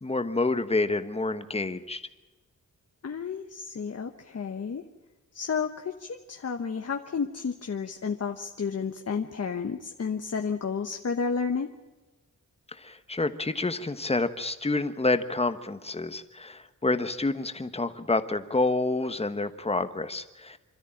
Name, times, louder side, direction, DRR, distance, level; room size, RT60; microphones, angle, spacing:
voice 1, 0.0-2.0 12.8-20.6, left 2 dB, 20° left, 10 dB, 1.3 m, -28 dB
voice 2, 3.0-4.8 5.3-11.7, left 5 dB, 55° left, 5 dB, 1.2 m, -31 dB
26.5 x 13.5 x 8.8 m, 1.1 s
wide cardioid pair, 110°, 31 cm